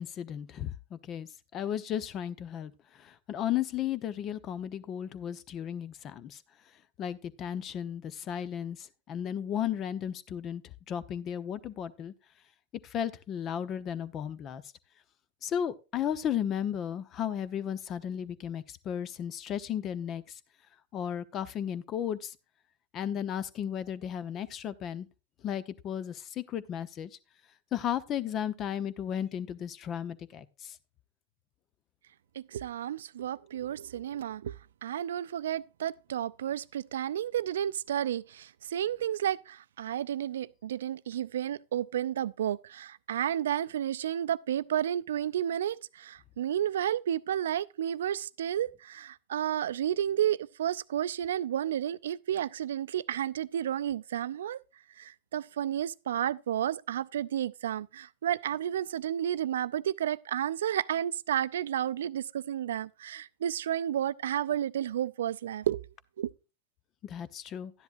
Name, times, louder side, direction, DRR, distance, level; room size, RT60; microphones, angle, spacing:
voice 1, 0.0-2.7 3.0-6.4 7.0-10.6 10.9-12.1 12.9-14.6 15.4-20.2 20.9-22.3 22.9-25.1 25.4-27.1 27.7-30.7 67.0-67.7, left 9 dB, 40° left, 0.9 m, -34 dB
voice 2, 32.4-34.5 34.8-54.6 55.0-65.8 66.2-66.3, right 10 dB, 75° right, 0.4 m, -32 dB
12.5 x 10.5 x 2.6 m
hypercardioid pair, 95°, 0 cm